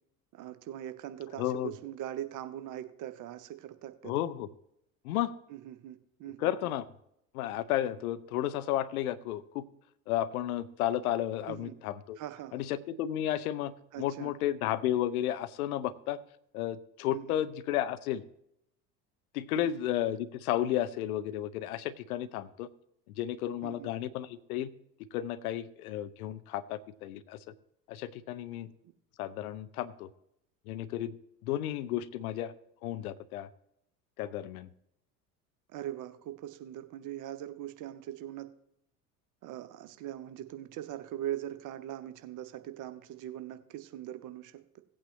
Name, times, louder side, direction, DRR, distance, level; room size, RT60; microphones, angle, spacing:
voice 1, 0.3-4.1 5.5-6.7 11.5-11.8 12.2-12.6 13.9-14.3 17.1-17.4 19.6-19.7 23.6-23.9 35.7-38.5 39.4-44.8, right 12 dB, 40° right, 10 dB, 0.8 m, -41 dB
voice 2, 1.4-1.7 4.0-4.5 5.0-5.3 6.4-6.8 7.3-9.6 10.1-12.2 12.5-16.2 16.5-18.2 19.3-22.7 23.2-24.7 25.1-27.4 27.9-28.7 29.2-30.1 30.7-31.2 31.4-32.5 32.8-33.5 34.2-34.7, left 12 dB, 65° left, 14 dB, 0.7 m, -33 dB
16.5 x 8.5 x 3.1 m, 0.77 s
figure-of-eight pair, 70°, 48 cm